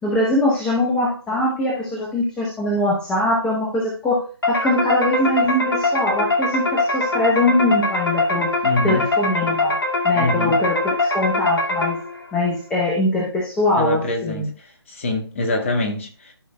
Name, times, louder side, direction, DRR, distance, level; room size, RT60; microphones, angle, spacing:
voice 1, 0.0-4.2 4.5-8.5 8.8-9.8 10.0-12.0 12.3-14.5, left 1 dB, 5° left, 0.8 m, -22 dB
sound 1, 4.4-12.3, left 2 dB, 65° left, 2.0 m, -22 dB
voice 2, 8.6-9.1 10.1-10.6 13.8-16.3, left 2 dB, 30° left, 1.5 m, -25 dB
13.0 x 5.5 x 2.2 m
figure-of-eight pair, 150°, 14 cm